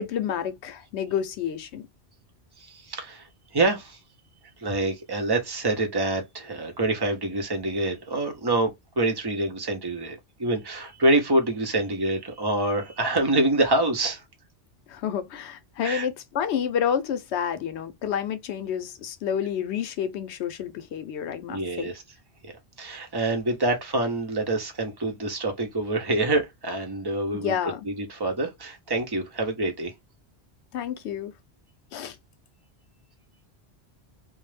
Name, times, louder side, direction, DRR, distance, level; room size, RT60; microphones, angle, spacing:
voice 1, 0.0-1.9 14.9-21.9 27.3-27.9 30.7-31.3 31.9-32.2, left 8 dB, 80° left, 0.8 m, -29 dB
voice 2, 2.6-3.3 3.5-4.0 4.6-8.7 9.0-14.2 15.8-16.1 21.5-22.0 22.4-22.5 22.8-29.9, right 2 dB, 25° right, 0.6 m, -26 dB
2.4 x 2.0 x 3.1 m
omnidirectional pair, 1.1 m